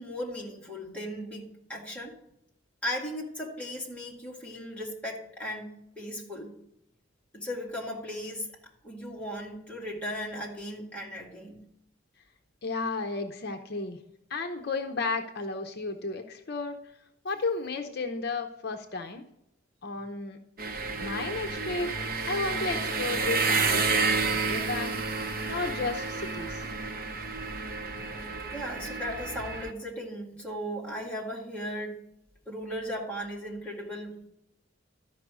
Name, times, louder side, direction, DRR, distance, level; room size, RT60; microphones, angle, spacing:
voice 1, 0.0-2.1 2.8-6.6 7.3-8.5 8.8-11.6 28.5-32.0 32.5-34.2, equal, 5° left, -3 dB, 2.0 m, -37 dB
voice 2, 12.6-14.0 14.3-16.8 17.2-19.2 19.8-20.4 21.0-22.0 22.3-26.6, left 3 dB, 55° left, 5 dB, 0.7 m, -33 dB
sound 1, 20.6-29.7, right 4 dB, 50° right, 0.9 m, -30 dB
12.5 x 5.4 x 6.1 m, 0.84 s
head